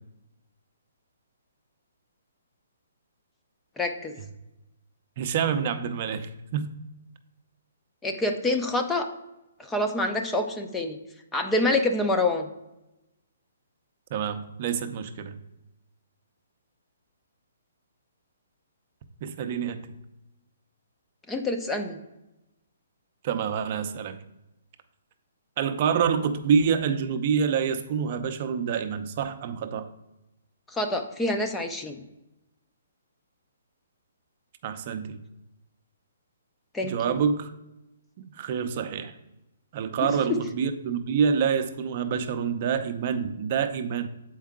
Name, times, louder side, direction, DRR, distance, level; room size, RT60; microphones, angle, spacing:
voice 1, 3.8-4.2 8.0-9.1 9.6-11.0 11.3-12.5 21.3-22.0 30.7-32.0 36.7-37.2 40.3-40.4, left 2 dB, 10° left, 5 dB, 0.5 m, -26 dB
voice 2, 5.2-6.8 14.1-15.3 19.2-19.9 23.2-24.2 25.6-29.9 34.6-35.2 36.8-37.5 38.2-39.1 39.7-44.1, right 7 dB, 40° right, 8 dB, 0.6 m, -27 dB
7.2 x 4.7 x 3.6 m, 0.94 s
hypercardioid pair, 150°, 0 cm